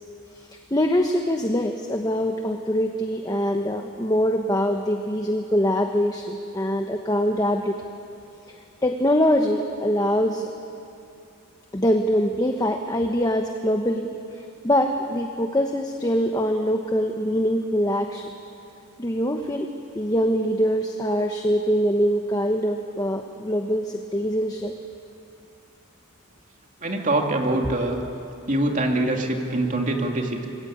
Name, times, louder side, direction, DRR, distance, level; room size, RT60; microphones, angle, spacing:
voice 1, 0.3-7.8 8.5-10.5 11.7-18.3 19.0-19.7 19.9-24.7, equal, 15° left, 4 dB, 1.1 m, -23 dB
voice 2, 26.8-28.0 28.5-30.5, right 2 dB, 35° right, 2 dB, 2.7 m, -24 dB
26.5 x 21.5 x 8.8 m, 2.6 s
head